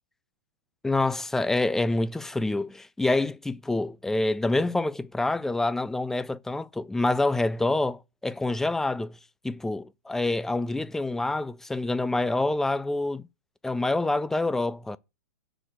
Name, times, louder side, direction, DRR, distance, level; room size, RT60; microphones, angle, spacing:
voice 1, 0.8-9.1 9.4-13.3 13.6-15.0, left 2 dB, 5° left, 0.3 m, -27 dB
6.3 x 4.1 x 6.3 m
hypercardioid pair, 120°, 9 cm